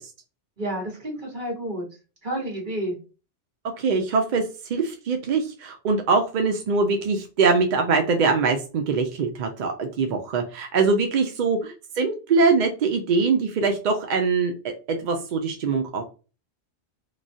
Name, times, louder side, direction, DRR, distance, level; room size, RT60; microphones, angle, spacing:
voice 1, 0.6-1.9 2.2-3.0 11.6-11.7, right 1 dB, 45° right, -2 dB, 1.4 m, -30 dB
voice 2, 3.8-14.5 14.9-16.0, right 4 dB, 60° right, 5 dB, 0.5 m, -23 dB
3.0 x 2.2 x 2.5 m, 0.33 s
omnidirectional pair, 1.2 m